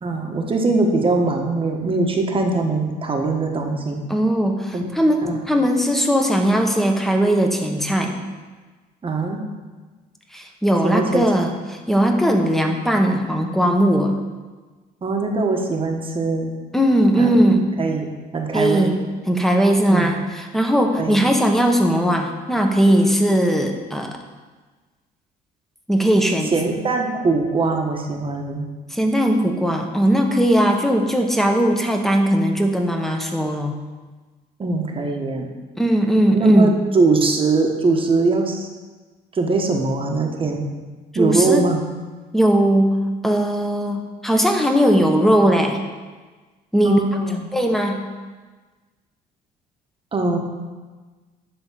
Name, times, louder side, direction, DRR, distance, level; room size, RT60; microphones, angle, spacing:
voice 1, 0.0-4.0 4.7-4.9 5.2-5.4 9.0-9.4 10.8-11.3 15.0-16.5 17.2-17.3 17.8-18.1 18.3-18.9 19.9-20.1 20.9-21.2 26.5-28.7 34.6-35.5 36.3-38.7 39.3-40.6 41.1-41.8 46.8-47.5 50.1-50.4, right 3 dB, 30° right, 2 dB, 1.3 m, -21 dB
voice 2, 4.1-8.2 10.3-14.2 16.7-17.7 18.5-19.0 19.3-24.2 25.9-26.5 28.9-33.7 35.8-36.8 41.1-41.6 42.3-43.0 43.2-45.8 46.7-47.0 47.5-48.1, equal, ahead, 3 dB, 1.2 m, -18 dB
10.5 x 3.9 x 7.4 m, 1.3 s
cardioid pair, 110°, 17 cm